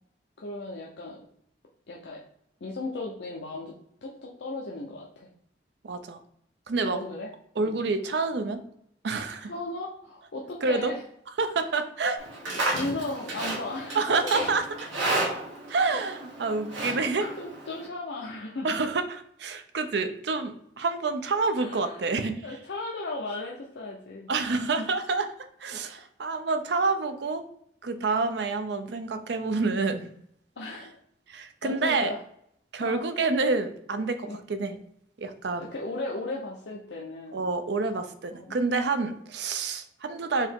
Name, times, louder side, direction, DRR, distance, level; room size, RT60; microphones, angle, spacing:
voice 1, 0.4-1.2 1.9-2.2 2.6-3.7 4.0-5.3 6.9-7.3 7.6-7.8 9.4-11.0 12.5-14.3 16.8-18.8 21.6-22.0 22.4-24.3 24.6-24.7 30.6-31.0 31.6-32.2 32.8-33.0 34.2-34.4 35.6-37.5 38.3-38.6 39.0-39.1, left 2 dB, 70° left, -2 dB, 0.6 m, -36 dB
voice 2, 5.8-6.2 6.7-7.0 7.6-8.6 9.0-9.5 10.6-10.9 11.4-12.2 13.9-14.6 15.7-17.3 18.6-22.4 24.3-25.3 25.6-27.4 27.8-30.1 31.3-32.1 32.7-34.8 35.2-35.7 37.3-40.5, right 3 dB, 65° right, 9 dB, 0.5 m, -28 dB
Livestock farm animals working animals, 12.2-17.9, right 2 dB, 85° right, 1.3 m, -32 dB
4.5 x 2.9 x 3.5 m, 0.69 s
head